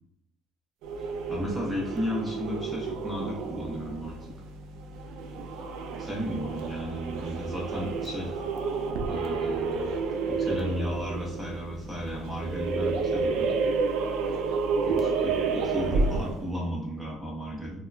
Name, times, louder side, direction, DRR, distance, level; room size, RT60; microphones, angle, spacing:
sound 1, 0.8-16.5, right 4 dB, 80° right, 0.3 m, -30 dB
voice 1, 1.0-4.2 6.0-8.3 9.0-9.9 10.3-13.5 14.9-15.4 15.6-17.9, equal, 10° right, -3 dB, 0.5 m, -34 dB
3.0 x 2.1 x 2.3 m, 0.80 s
cardioid pair, 165°, 0 cm